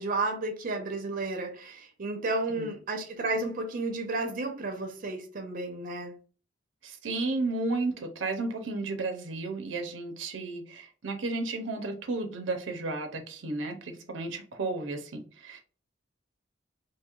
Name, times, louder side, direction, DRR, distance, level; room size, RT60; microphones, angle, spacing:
voice 1, 0.0-6.1, right 2 dB, 45° right, 0.6 m, -32 dB
voice 2, 6.8-15.6, right 3 dB, 90° right, 0.6 m, -33 dB
3.0 x 2.8 x 2.3 m
head